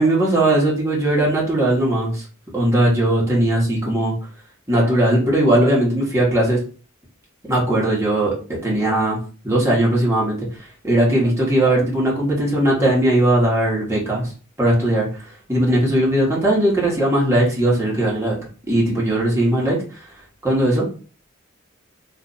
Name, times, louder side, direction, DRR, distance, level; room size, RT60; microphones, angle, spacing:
voice 1, 0.0-2.2 2.5-4.1 4.7-6.6 7.5-8.3 8.6-9.2 9.4-10.4 10.8-14.3 14.6-15.1 15.5-18.4 18.7-19.8 20.4-20.8, right 1 dB, 15° right, -5 dB, 1.2 m, -18 dB
2.6 x 2.4 x 3.9 m, 0.38 s
head